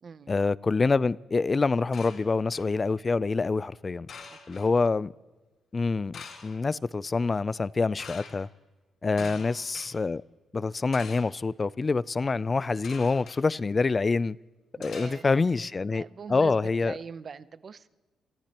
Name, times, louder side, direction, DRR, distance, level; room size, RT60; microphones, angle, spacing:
voice 1, 0.3-4.1 4.5-5.1 5.7-8.5 9.0-10.2 10.5-14.4 14.8-16.0 16.3-16.9, left 4 dB, 35° left, 0.4 m, -26 dB
sound 1, 1.9-2.7 4.1-4.7 6.1-6.7 8.0-8.3 9.2-9.9 10.9-11.4 12.8-13.4 14.8-15.5, left 5 dB, 65° left, 4.3 m, -45 dB
voice 2, 4.3-4.6 9.2-9.4 14.8-15.2 15.9-17.9, right 6 dB, 50° right, 0.7 m, -43 dB
28.5 x 15.0 x 3.0 m
cardioid pair, 75°, 0 cm